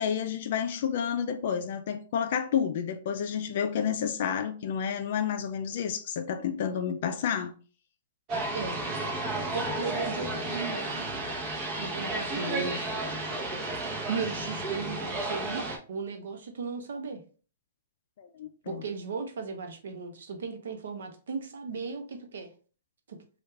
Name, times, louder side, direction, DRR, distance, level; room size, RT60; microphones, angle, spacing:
voice 1, 0.0-7.5 18.2-18.8, left 8 dB, 55° left, 0.4 m, -30 dB
sound 1, 8.3-15.8, right 2 dB, 30° right, 0.8 m, -32 dB
voice 2, 9.5-11.1 11.8-12.9 14.1-17.2 18.7-22.5 23.1-23.2, right 4 dB, 80° right, 0.7 m, -36 dB
3.3 x 2.4 x 3.2 m
hypercardioid pair, 150°, 0 cm